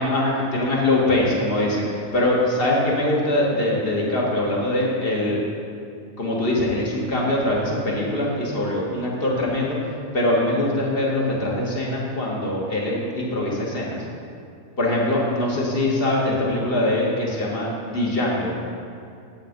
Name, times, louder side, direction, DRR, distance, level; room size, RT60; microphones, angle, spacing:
voice 1, 0.0-5.4 6.2-9.8 10.1-14.0 14.8-18.5, left 1 dB, 45° left, -3 dB, 2.1 m, -22 dB
10.5 x 8.5 x 5.3 m, 2.4 s
omnidirectional pair, 1.4 m